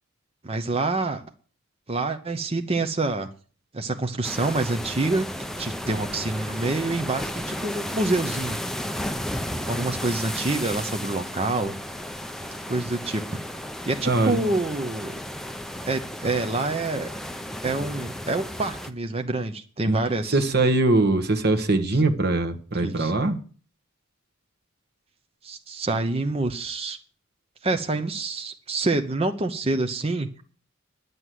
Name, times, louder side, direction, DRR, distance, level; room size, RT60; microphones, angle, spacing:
voice 1, 0.4-1.2 1.9-3.3 3.7-5.3 5.6-8.6 9.7-11.8 12.7-13.2 13.9-15.1 15.9-17.1 17.6-20.4 22.8-23.1 25.4-27.0 27.6-30.3, right 2 dB, 30° right, 0.8 m, -27 dB
sound 1, 4.2-18.9, equal, ahead, 0.7 m, -33 dB
voice 2, 14.0-14.4 19.9-20.0 20.3-23.4, right 2 dB, 50° right, 1.3 m, -22 dB
11.0 x 8.2 x 7.7 m
head